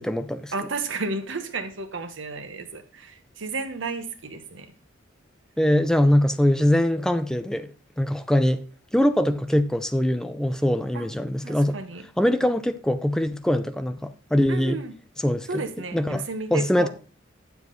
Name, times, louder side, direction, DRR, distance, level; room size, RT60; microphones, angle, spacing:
voice 1, 0.0-0.5 5.6-8.6 8.9-11.8 12.2-14.8 15.2-15.6 15.9-16.9, left 1 dB, 5° left, 0.4 m, -23 dB
voice 2, 0.5-4.7 10.9-11.1 11.4-12.1 14.5-14.9 15.5-16.9, right 3 dB, 70° right, 1.1 m, -32 dB
8.1 x 7.1 x 4.0 m
head